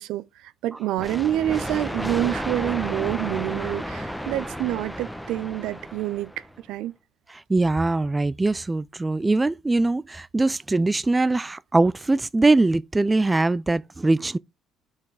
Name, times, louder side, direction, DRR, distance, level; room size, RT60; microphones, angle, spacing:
voice 1, 0.0-6.3 6.7-6.9, right 13 dB, 75° right, 0.6 m, -27 dB
sound 1, 1.0-6.6, equal, ahead, 1.0 m, -32 dB
voice 2, 7.3-14.4, right 2 dB, 15° right, 0.3 m, -22 dB
5.9 x 4.6 x 4.7 m
supercardioid pair, 70°, 0 cm